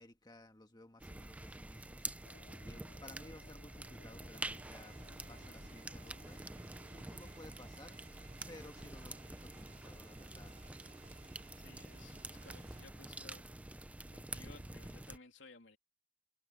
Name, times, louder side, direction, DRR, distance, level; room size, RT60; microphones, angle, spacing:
voice 1, 0.0-2.3 2.6-5.0 5.3-6.4 6.9-8.2 8.5-10.6, left 1 dB, 25° left, 1.7 m, -57 dB
sound 1, 1.0-15.2, right 2 dB, 10° right, 0.4 m, -48 dB
sound 2, 2.2-10.7 11.1-11.2 11.4-11.5, left 3 dB, 45° left, 1.2 m, -65 dB
sound 3, 4.3-12.8, right 3 dB, 40° right, 2.7 m, -61 dB
voice 2, 11.6-13.4 14.1-15.8, left 3 dB, 85° left, 2.9 m, -58 dB
head